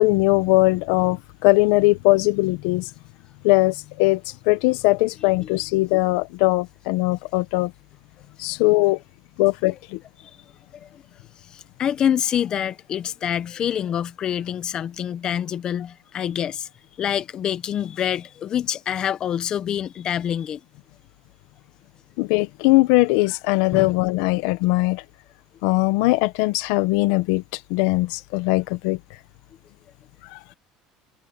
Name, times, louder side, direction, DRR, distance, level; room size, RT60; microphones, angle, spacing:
voice 1, 0.0-2.9 3.4-7.7 8.4-9.0 9.4-10.0 22.2-25.0 25.6-29.0 30.3-30.4, left 21 dB, 85° left, 0.9 m, -20 dB
voice 2, 11.5-16.7 17.0-20.6 23.7-23.9, left 9 dB, 40° left, 0.9 m, -26 dB
cardioid pair, 135°, 2 cm